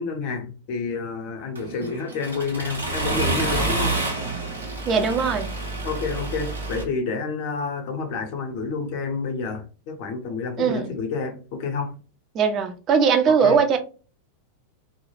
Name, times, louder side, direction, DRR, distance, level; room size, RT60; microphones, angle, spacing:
voice 1, 0.0-4.0 5.8-11.9 13.4-13.6, left 4 dB, 45° left, 0.6 m, -29 dB
Accelerating revving vroom, 1.6-6.8, right 2 dB, 75° right, 0.7 m, -28 dB
voice 2, 4.9-5.5 10.6-10.9 12.3-13.8, right 6 dB, 30° right, 0.4 m, -20 dB
2.2 x 2.0 x 3.1 m
figure-of-eight pair, 90°, 0 cm